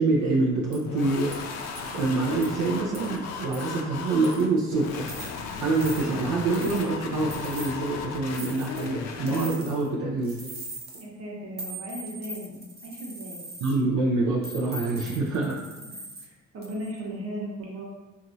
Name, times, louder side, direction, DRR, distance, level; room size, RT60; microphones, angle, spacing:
voice 1, 0.0-1.4 1.9-5.0 5.6-10.5 13.6-15.6, right 3 dB, 85° right, -3 dB, 0.5 m, -26 dB
sound 1, 0.7-0.9 1.3-1.4 1.7-2.0 2.4-2.5 2.9-3.2 3.5-3.8 4.2-4.6 5.0-5.3 5.7-6.0 6.5-6.9 7.3-7.7 8.3-8.9 9.3-9.9 10.2-11.0 11.6-13.7 14.4-16.3 16.6-17.0, right 2 dB, 35° right, 0.5 m, -41 dB
sound 2, 0.8-9.6, left 5 dB, 60° left, 0.4 m, -36 dB
voice 2, 11.0-13.4 16.2-17.8, right 1 dB, 50° right, -3 dB, 0.9 m, -37 dB
2.9 x 2.4 x 2.6 m, 1.2 s
cardioid pair, 90°, 30 cm